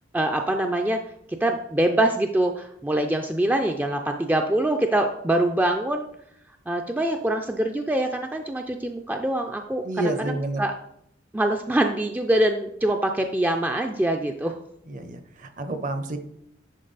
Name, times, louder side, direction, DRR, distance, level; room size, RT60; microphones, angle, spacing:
voice 1, 0.1-1.0 1.4-6.1 6.7-9.8 10.6-10.7 11.3-14.5, right 1 dB, 10° right, 4 dB, 0.4 m, -24 dB
voice 2, 9.8-10.6 14.9-16.2, right 2 dB, 45° right, 8 dB, 0.8 m, -29 dB
10.0 x 4.6 x 4.0 m, 0.74 s
head